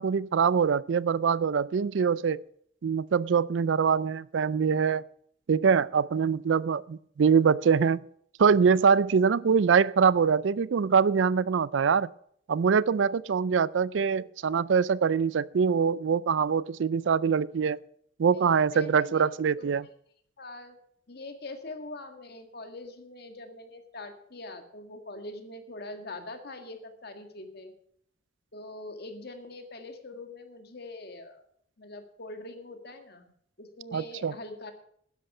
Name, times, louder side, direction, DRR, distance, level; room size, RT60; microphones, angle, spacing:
voice 1, 0.0-2.4 2.8-5.0 5.5-8.0 8.4-12.1 12.5-17.8 18.2-19.8 33.9-34.3, right 6 dB, 70° right, 0.4 m, -24 dB
voice 2, 18.3-19.9 20.4-20.8 21.1-27.7 28.5-31.4 31.8-33.3 33.6-34.7, left 2 dB, 55° left, 1.8 m, -43 dB
12.5 x 10.5 x 5.5 m
head